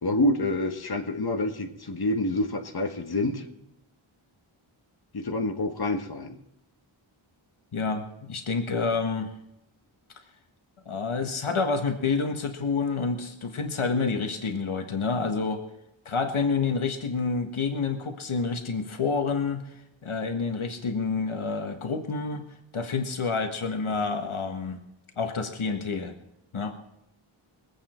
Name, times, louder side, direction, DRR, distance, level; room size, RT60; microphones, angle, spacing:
voice 1, 0.0-3.5 5.1-6.4, left 2 dB, 50° left, 4 dB, 1.7 m, -27 dB
voice 2, 7.7-9.3 10.8-15.6 16.0-19.7 20.0-22.4 22.7-24.8 25.2-26.1 26.5-26.7, left 4 dB, 75° left, 5 dB, 1.6 m, -28 dB
23.0 x 8.7 x 4.4 m, 0.84 s
wide cardioid pair, 80°, 49 cm